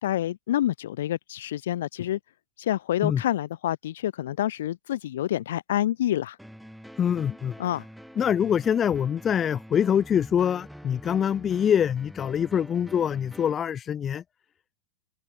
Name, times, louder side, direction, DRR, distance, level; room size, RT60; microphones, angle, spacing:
voice 1, 0.0-2.2 2.6-6.4 7.6-7.8, left 12 dB, 60° left, 1.4 m, -27 dB
sound 1, 6.4-13.5, equal, ahead, 6.8 m, -46 dB
voice 2, 7.0-7.5 8.2-14.2, left 8 dB, 25° left, 0.5 m, -24 dB
open air
figure-of-eight pair, 90°, 0 cm